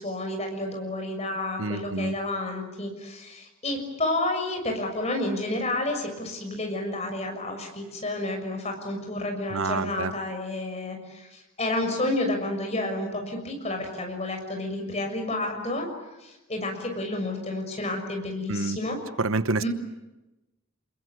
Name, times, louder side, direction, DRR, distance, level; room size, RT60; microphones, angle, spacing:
voice 1, 0.0-15.9 16.2-19.0 19.6-19.7, left 2 dB, 30° left, 3 dB, 6.5 m, -30 dB
voice 2, 1.6-2.1 9.5-10.1 18.5-18.8 19.2-19.7, right 3 dB, 75° right, 14 dB, 1.0 m, -27 dB
28.0 x 22.0 x 9.5 m, 1.0 s
head